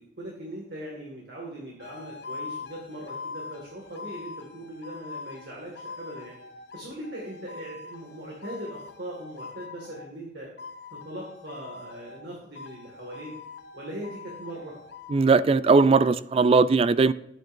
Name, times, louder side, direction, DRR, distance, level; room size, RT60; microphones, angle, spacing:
voice 1, 0.0-6.3 6.7-10.5 10.9-13.3 13.7-14.7, right 1 dB, 60° right, 2.0 m, -40 dB
sound 1, 1.8-10.1 10.6-12.3 12.6-15.2, left 4 dB, 60° left, 0.9 m, -43 dB
voice 2, 15.1-17.1, right 4 dB, 30° right, 0.3 m, -19 dB
11.5 x 8.7 x 2.6 m
head